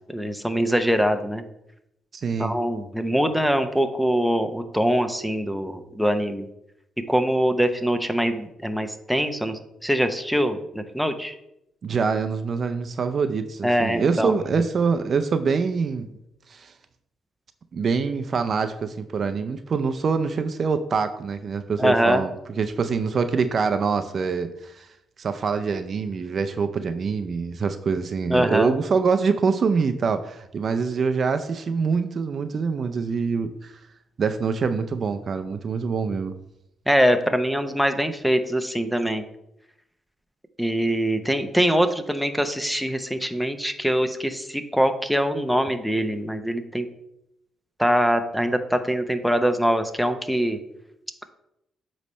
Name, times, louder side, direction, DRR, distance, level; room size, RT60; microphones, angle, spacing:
voice 1, 0.1-1.4 2.4-6.5 7.1-11.3 13.6-14.3 21.8-22.2 28.3-28.7 36.9-39.2 40.6-46.9 47.8-50.6, equal, ahead, 8 dB, 0.7 m, -23 dB
voice 2, 2.1-2.5 11.8-16.1 16.5-16.7 17.7-24.9 25.2-33.7 34.2-36.3, right 5 dB, 50° right, 9 dB, 0.5 m, -25 dB
8.2 x 3.2 x 5.4 m, 0.83 s
cardioid pair, 90°, 0 cm